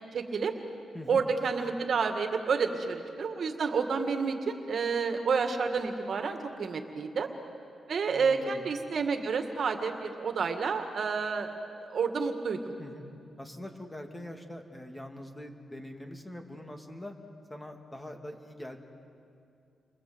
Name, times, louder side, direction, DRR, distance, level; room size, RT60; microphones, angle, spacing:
voice 1, 0.1-0.5 1.1-7.3 7.9-12.7, right 5 dB, 60° right, 6 dB, 2.2 m, -30 dB
voice 2, 0.9-1.3 8.1-8.6 12.8-13.1 13.4-17.1 17.5-18.8, left 1 dB, 15° left, 3 dB, 2.8 m, -43 dB
29.5 x 24.5 x 8.1 m, 2.5 s
cardioid pair, 100°, 0 cm